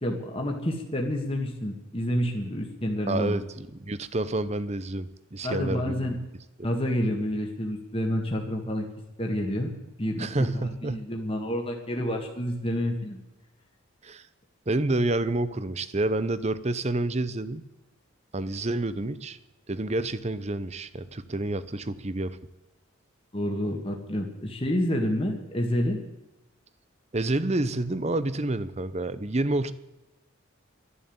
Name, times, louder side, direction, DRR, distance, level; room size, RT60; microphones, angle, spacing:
voice 1, 0.0-3.4 5.4-6.2 6.6-8.8 9.2-9.7 10.0-13.2 23.3-26.0, equal, 25° left, 1 dB, 1.6 m, -29 dB
voice 2, 3.1-6.1 10.2-11.0 14.0-14.2 14.7-17.7 18.3-19.4 19.7-22.4 27.1-29.7, right 2 dB, 30° right, 15 dB, 0.7 m, -28 dB
12.5 x 11.0 x 8.7 m, 1.0 s
head